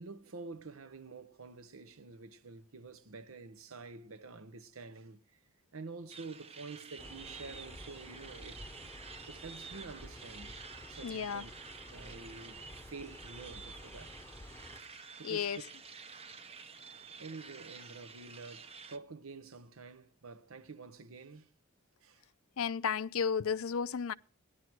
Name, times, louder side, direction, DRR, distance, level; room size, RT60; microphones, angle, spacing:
voice 1, 0.0-5.4 5.7-8.9 9.3-10.5 10.9-11.5 11.9-14.2 15.2-15.6 17.2-21.5 22.0-22.2, right 4 dB, 75° right, 0.9 m, -48 dB
sound 1, 6.1-19.0, right 5 dB, 30° right, 0.7 m, -50 dB
sound 2, 7.0-14.8, left 1 dB, 10° left, 0.8 m, -51 dB
voice 2, 11.0-11.4 15.2-15.6 22.6-24.1, left 6 dB, 80° left, 0.5 m, -33 dB
15.5 x 11.0 x 4.5 m
head